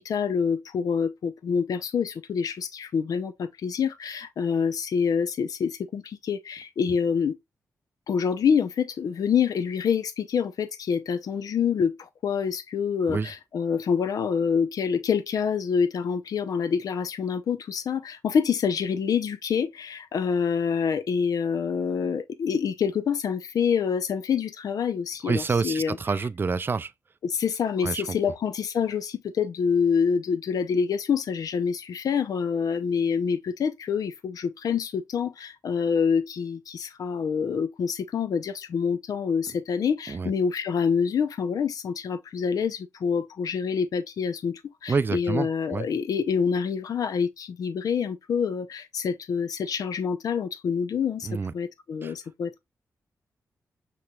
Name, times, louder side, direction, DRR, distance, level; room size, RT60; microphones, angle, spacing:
voice 1, 0.0-7.4 8.1-26.0 27.2-51.3 51.5-52.6, left 6 dB, 75° left, 0.6 m, -26 dB
voice 2, 25.2-26.9 27.8-28.1 40.1-40.3 44.9-45.9 51.2-51.5 52.0-52.1, right 4 dB, 35° right, 0.3 m, -27 dB
5.9 x 3.1 x 2.3 m
cardioid pair, 50°, 6 cm